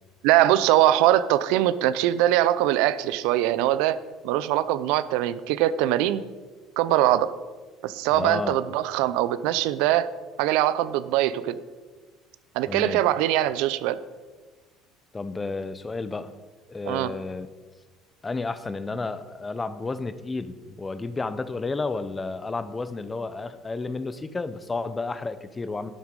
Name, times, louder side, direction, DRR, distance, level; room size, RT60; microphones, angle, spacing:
voice 1, 0.2-4.0 4.2-6.2 6.8-7.3 7.8-10.1 10.4-11.5 12.6-14.0 16.9-17.1, right 13 dB, 80° right, 15 dB, 0.5 m, -22 dB
voice 2, 8.1-8.6 12.7-13.0 15.1-16.3 16.7-17.5 18.2-25.9, left 3 dB, 20° left, 13 dB, 0.7 m, -31 dB
11.5 x 8.0 x 5.3 m, 1.3 s
supercardioid pair, 110°, 0 cm